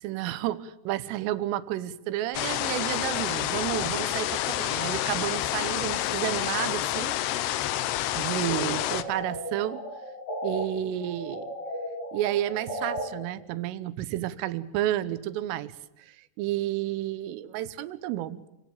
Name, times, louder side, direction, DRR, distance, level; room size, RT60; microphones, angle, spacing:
voice 1, 0.0-7.2 8.2-9.8 10.4-11.5 12.1-15.8 16.1-18.4, right 13 dB, 90° right, 15 dB, 3.6 m, -31 dB
sound 1, 2.3-9.0, left 13 dB, 75° left, 2.5 m, -29 dB
sound 2, 8.6-10.6 11.0-13.0, equal, 35° left, 8.0 m, -35 dB
28.0 x 18.0 x 7.2 m, 0.94 s
omnidirectional pair, 5.7 m